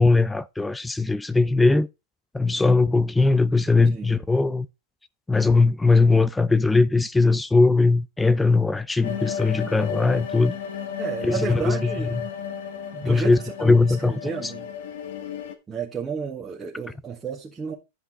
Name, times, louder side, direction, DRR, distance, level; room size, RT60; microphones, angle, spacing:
voice 1, 0.0-1.9 2.3-4.7 5.3-10.5 11.2-12.2 13.0-14.1 14.4-14.5, left 3 dB, 5° left, 0.4 m, -20 dB
sound 1, 9.0-15.5, left 8 dB, 70° left, 1.7 m, -33 dB
voice 2, 11.0-12.2 12.9-13.3 13.6-13.7 14.0-14.7 15.7-17.7, right 5 dB, 15° right, 1.7 m, -32 dB
10.0 x 5.6 x 3.7 m
hypercardioid pair, 125°, 0 cm